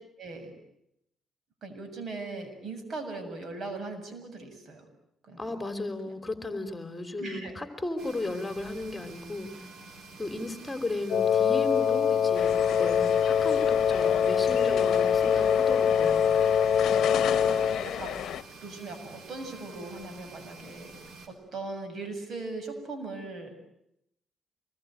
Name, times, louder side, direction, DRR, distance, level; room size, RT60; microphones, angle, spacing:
voice 1, 0.2-0.5 1.6-4.8 5.2-5.6 7.2-7.5 12.7-13.3 16.8-17.0 17.5-18.2 18.6-20.9 21.3-23.5, right 3 dB, 55° right, 7 dB, 7.4 m, -39 dB
voice 2, 5.4-9.5 10.2-16.4, left 2 dB, 20° left, 8 dB, 3.2 m, -35 dB
sound 1, 8.0-21.3, right 3 dB, 70° right, 5.2 m, -48 dB
Wind instrument woodwind instrument, 11.1-17.9, left 8 dB, 55° left, 1.2 m, -24 dB
sound 2, 12.4-18.4, left 10 dB, 70° left, 1.0 m, -35 dB
26.5 x 21.5 x 9.2 m, 0.79 s
cardioid pair, 90°, 0 cm